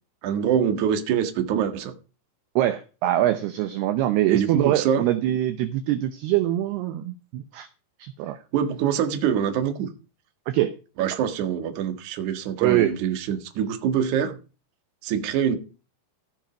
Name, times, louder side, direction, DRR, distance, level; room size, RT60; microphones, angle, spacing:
voice 1, 0.2-1.9 4.3-5.0 8.5-9.9 11.0-14.4 15.0-15.6, right 8 dB, 55° right, 2.4 m, -24 dB
voice 2, 2.6-7.7 8.0-8.4 10.5-10.7 12.6-13.0, right 13 dB, 75° right, 2.5 m, -23 dB
15.5 x 7.7 x 5.1 m
omnidirectional pair, 5.5 m